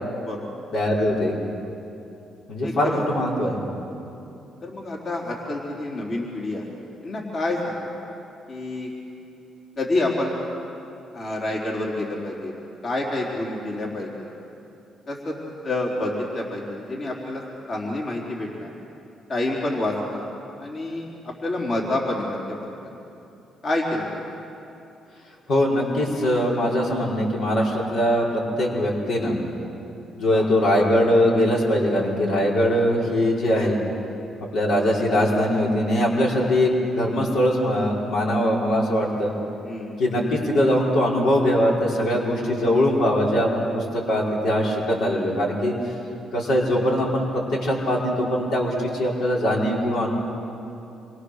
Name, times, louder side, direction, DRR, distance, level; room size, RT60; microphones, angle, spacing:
voice 1, 0.7-1.4 2.5-3.6 25.5-28.3 28.6-29.4 30.0-33.8 34.5-39.3 40.0-45.7 46.3-50.1, equal, 75° left, -3 dB, 5.0 m, -21 dB
voice 2, 2.6-3.0 4.6-6.6 7.0-7.9 8.5-8.9 9.8-10.3 11.1-14.3 15.1-15.3 15.6-17.4 17.7-18.7 19.3-20.3 20.6-22.9 23.6-24.2 30.3-30.5 39.6-39.9, left 2 dB, 45° left, -2 dB, 4.2 m, -28 dB
27.5 x 24.0 x 6.7 m, 2.8 s
cardioid pair, 90°, 0 cm